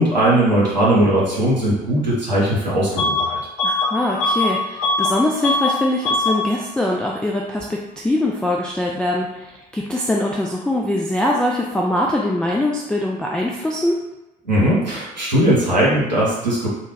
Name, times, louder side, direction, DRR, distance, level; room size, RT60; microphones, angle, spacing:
voice 1, 0.0-3.4 14.4-16.7, right 1 dB, 90° right, -7 dB, 0.7 m, -18 dB
Bus / Alarm, 3.0-3.3 3.6-5.1 5.4-5.8 6.0-6.4, left 2 dB, 60° left, 0.5 m, -21 dB
voice 2, 3.6-14.0, left 1 dB, 5° left, -3 dB, 0.3 m, -22 dB
2.2 x 2.1 x 3.3 m, 0.99 s
figure-of-eight pair, 55°, 21 cm